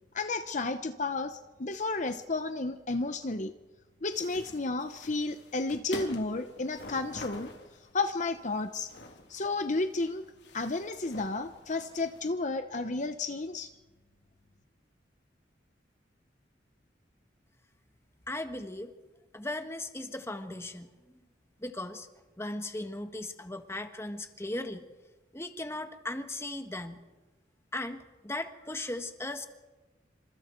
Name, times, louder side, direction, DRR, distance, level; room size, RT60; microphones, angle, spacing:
voice 1, 0.1-3.5 4.0-7.5 7.9-8.9 9.3-10.2 10.5-13.7, left 3 dB, 45° left, 8 dB, 0.9 m, -32 dB
sound 1, 4.1-12.3, left 1 dB, 75° left, 3.2 m, -46 dB
voice 2, 18.3-18.9 19.3-20.9 21.6-22.1 22.4-24.9 25.3-27.0 27.7-28.0 28.2-29.5, left 1 dB, 15° left, 7 dB, 1.5 m, -37 dB
28.0 x 26.5 x 4.6 m, 1.2 s
head